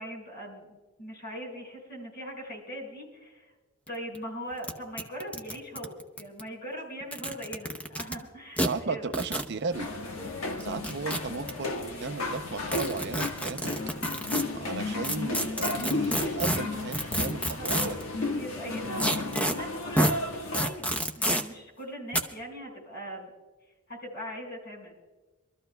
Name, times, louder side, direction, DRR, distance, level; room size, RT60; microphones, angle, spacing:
voice 1, 0.0-3.5 3.9-9.1 17.4-17.9 18.3-20.9 21.2-23.3 23.9-25.0, equal, 50° left, -1 dB, 5.5 m, -40 dB
sound 1, 3.9-4.0 4.1-4.2 4.6-4.7 5.0-6.4 7.0-8.1 8.6-8.7 9.1-9.5 10.6-11.5 12.7-14.4 15.0-18.0 19.0-19.5 20.0-20.1 20.5-21.4 22.1-22.2, equal, 5° left, 0.8 m, -28 dB
voice 2, 8.6-9.9 10.6-13.7 14.5-18.0 18.3-18.7, right 4 dB, 55° right, 10 dB, 0.6 m, -35 dB
sound 2, 9.7-20.7, left 2 dB, 80° left, 1.4 m, -33 dB
26.5 x 13.5 x 2.2 m, 1.2 s
head